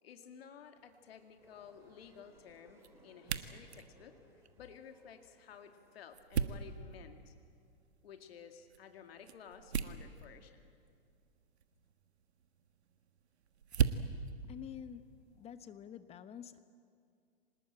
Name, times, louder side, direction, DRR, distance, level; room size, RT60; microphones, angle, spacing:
voice 1, 0.0-4.2 4.6-7.3 8.0-10.7, left 7 dB, 65° left, 6 dB, 2.2 m, -54 dB
sound 1, 0.8-15.6, right 7 dB, 75° right, 1.5 m, -42 dB
sound 2, 1.4-6.5, equal, 10° right, 4.6 m, -66 dB
voice 2, 14.4-16.6, left 9 dB, 20° left, 12 dB, 1.1 m, -48 dB
26.0 x 19.5 x 8.9 m, 2.3 s
hypercardioid pair, 120°, 33 cm